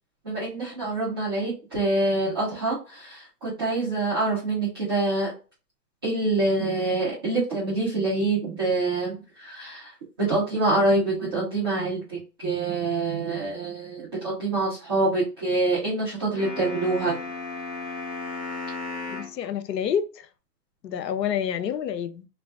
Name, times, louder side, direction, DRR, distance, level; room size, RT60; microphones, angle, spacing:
voice 1, 0.2-5.3 6.0-17.2, right 2 dB, 15° right, 0.4 m, -26 dB
sound 1, 16.4-19.4, left 3 dB, 15° left, 0.9 m, -34 dB
voice 2, 19.1-20.3 20.8-22.3, left 8 dB, 85° left, 0.6 m, -28 dB
2.4 x 2.3 x 3.5 m
hypercardioid pair, 145°, 49 cm